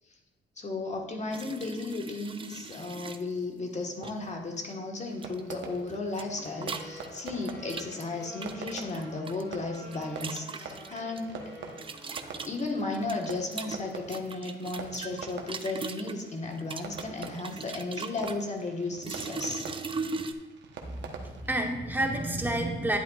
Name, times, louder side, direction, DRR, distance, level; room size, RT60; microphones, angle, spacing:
voice 1, 0.6-11.5 12.5-19.6, left 3 dB, 35° left, 2 dB, 1.5 m, -34 dB
sound 1, 1.3-3.2 4.0-4.3 5.2-5.6 5.9-9.4 9.7-11.2 11.8-16.2 16.6-18.4 19.0-20.3, right 4 dB, 25° right, 0.5 m, -39 dB
Fireworks, 5.0-21.5, right 5 dB, 65° right, 1.1 m, -46 dB
sound 2, 6.3-12.8, left 1 dB, 15° left, 2.3 m, -49 dB
voice 2, 20.8-23.0, right 1 dB, 10° right, 2 dB, 1.2 m, -30 dB
10.5 x 8.3 x 2.4 m, 1.3 s
cardioid pair, 90°, 20 cm